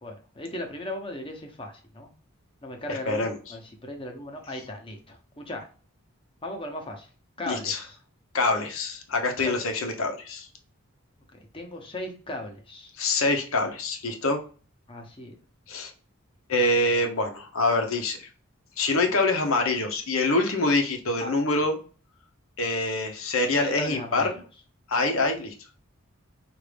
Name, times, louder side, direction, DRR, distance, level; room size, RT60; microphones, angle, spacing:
voice 1, 0.0-2.1 2.6-5.7 6.4-7.1 7.4-8.0 9.4-9.5 11.3-12.9 14.9-15.3 21.2-21.3 23.6-24.4, left 1 dB, 25° left, 3 dB, 0.8 m, -37 dB
voice 2, 2.9-3.4 7.5-7.8 8.3-10.5 13.0-14.4 15.7-15.9 16.5-18.3 18.8-21.8 22.6-24.3 24.9-25.5, left 2 dB, 75° left, 4 dB, 0.9 m, -25 dB
5.0 x 2.6 x 3.3 m, 0.37 s
head